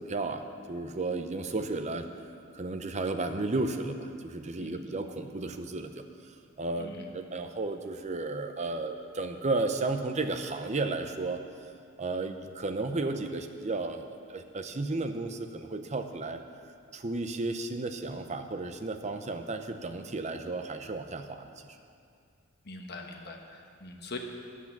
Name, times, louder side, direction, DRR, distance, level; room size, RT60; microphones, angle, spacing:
voice 1, 0.0-2.1 2.5-11.4 12.0-21.8, right 3 dB, 35° right, 7 dB, 0.7 m, -33 dB
voice 2, 6.8-7.1 22.6-24.2, left 2 dB, 50° left, 2 dB, 1.2 m, -42 dB
10.5 x 8.4 x 7.3 m, 2.3 s
head